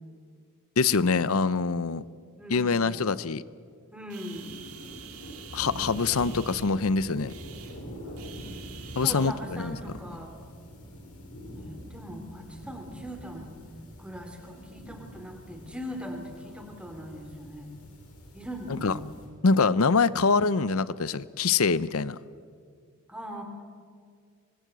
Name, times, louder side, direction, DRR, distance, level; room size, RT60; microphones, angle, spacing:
voice 1, 0.8-2.0 2.5-3.4 5.5-7.3 9.0-9.8 18.8-18.9 19.4-22.2, left 4 dB, 70° left, 18 dB, 0.7 m, -24 dB
voice 2, 2.4-3.0 3.9-4.4 9.0-10.3 11.6-13.5 14.0-17.8 18.3-19.2 23.1-23.4, equal, 5° right, 3 dB, 3.2 m, -40 dB
sound 1, 4.1-9.3, right 10 dB, 80° right, 2.3 m, -47 dB
sound 2, 4.3-19.3, equal, 90° left, 5.9 m, -44 dB
25.0 x 20.5 x 8.1 m, 2.1 s
head